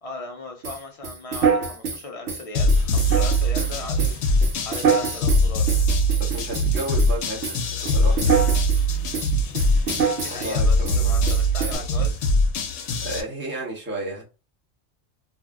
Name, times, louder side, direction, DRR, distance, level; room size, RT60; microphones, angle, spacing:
voice 1, 0.0-5.7 9.6-9.9 10.2-12.3, left 3 dB, 60° left, 0.3 m, -38 dB
sound 1, 0.6-7.2 7.4-8.8 9.1-10.6 10.8-11.0 11.3-11.8, right 6 dB, 75° right, 1.1 m, -26 dB
sound 2, 2.5-13.2, equal, 85° left, 0.9 m, -22 dB
voice 2, 6.2-7.6 7.9-8.2 10.3-11.2 13.0-14.2, right 2 dB, 10° right, 0.7 m, -32 dB
2.5 x 2.1 x 3.4 m
omnidirectional pair, 1.2 m